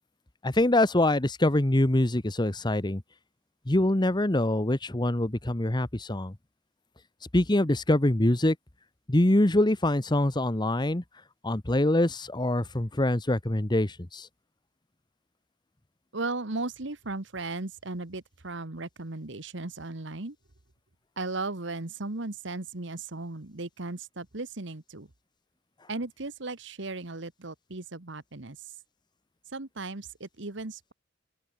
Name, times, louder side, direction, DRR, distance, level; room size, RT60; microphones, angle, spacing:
voice 1, 0.4-3.0 3.7-6.3 7.3-8.6 9.1-11.0 11.4-14.3, left 1 dB, 20° left, 1.1 m, -24 dB
voice 2, 16.1-20.4 21.2-25.1 25.9-28.7 29.5-30.9, right 3 dB, 65° right, 1.6 m, -36 dB
open air
head